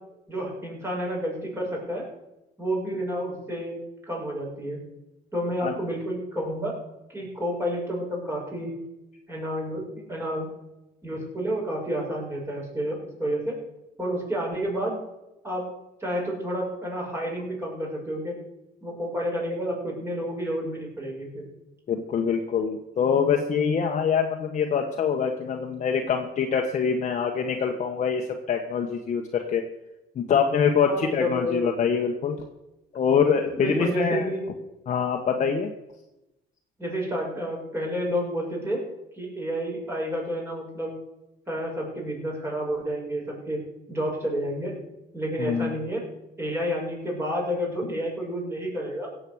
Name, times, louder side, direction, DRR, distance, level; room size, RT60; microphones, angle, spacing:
voice 1, 0.3-2.1 2.6-3.8 4.1-4.8 5.3-6.7 7.1-8.7 9.3-10.5 11.0-13.5 14.0-15.0 15.4-15.7 16.0-18.4 18.8-21.5 30.8-31.7 33.6-34.4 36.8-38.8 39.2-40.9 41.5-43.6 43.9-44.8 45.1-46.0 46.4-49.1, equal, 15° right, -2 dB, 6.4 m, -30 dB
voice 2, 21.9-29.6 30.1-32.4 32.9-34.3 34.9-35.7 45.4-45.7, left 6 dB, 45° left, 2 dB, 1.4 m, -24 dB
16.0 x 8.0 x 6.4 m, 0.94 s
cardioid pair, 110°, 17 cm